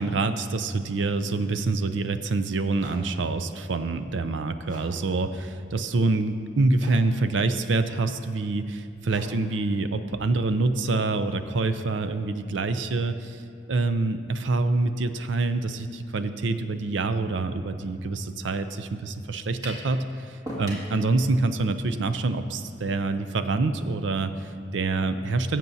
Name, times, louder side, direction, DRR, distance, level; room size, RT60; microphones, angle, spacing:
voice 1, 0.0-13.4 13.7-25.6, right 3 dB, 85° right, 10 dB, 0.5 m, -26 dB
sound 1, 2.0-2.1 2.7-11.5, right 1 dB, 45° right, 1.4 m, -50 dB
sound 2, 19.6-19.9 20.5-20.9, equal, 20° right, 1.8 m, -35 dB
17.5 x 7.5 x 2.7 m, 2.6 s
head